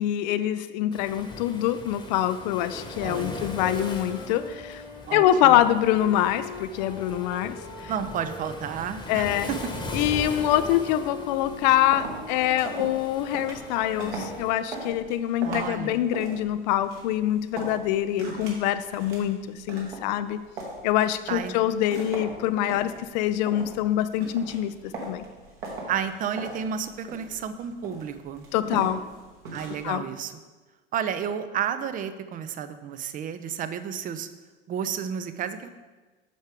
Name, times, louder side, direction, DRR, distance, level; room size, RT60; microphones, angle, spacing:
voice 1, 0.0-4.8 5.1-7.9 9.1-9.5 9.9-20.4 20.8-25.3 28.5-29.0 29.8-30.0, left 12 dB, 45° left, 13 dB, 0.4 m, -25 dB
Waves surf, 0.9-14.5, left 2 dB, 15° left, 1.2 m, -40 dB
sound 1, 2.7-8.6 9.3-14.7, left 1 dB, 85° left, 2.1 m, -42 dB
voice 2, 3.0-3.5 5.1-5.5 7.9-9.7 15.4-16.0 21.3-21.5 25.9-28.5 29.5-30.3 30.9-34.3 34.7-35.7, right 8 dB, 30° right, 11 dB, 0.6 m, -32 dB
sound 2, 11.4-29.9, right 3 dB, 60° right, 1.9 m, -40 dB
9.2 x 6.5 x 3.5 m, 1.3 s
figure-of-eight pair, 75°, 30 cm